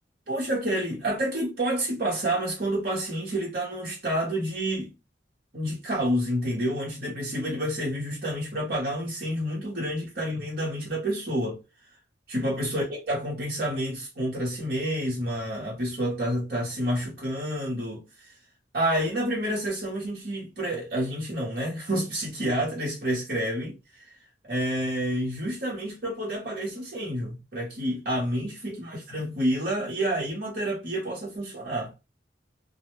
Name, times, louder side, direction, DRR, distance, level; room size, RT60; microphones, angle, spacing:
voice 1, 0.3-4.9 5.5-11.6 12.3-18.0 18.7-24.1 24.5-31.9, right 1 dB, 55° right, 0.8 m, -29 dB
2.1 x 2.0 x 3.0 m
head